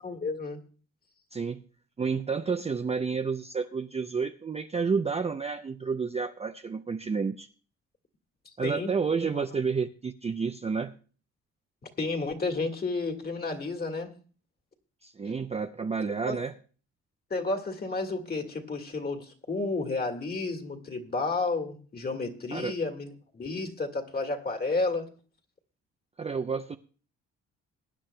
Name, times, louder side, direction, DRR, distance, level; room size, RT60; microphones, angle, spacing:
voice 1, 0.0-0.6 8.6-8.9 9.3-9.4 12.0-14.1 16.3-16.4 17.3-25.1, left 3 dB, 30° left, 4 dB, 1.8 m, -31 dB
voice 2, 2.0-7.5 8.6-10.9 15.0-16.5 22.5-22.7 26.2-26.8, right 5 dB, 20° right, 8 dB, 0.5 m, -30 dB
23.0 x 9.9 x 2.2 m, 0.40 s
cardioid pair, 90°, 30 cm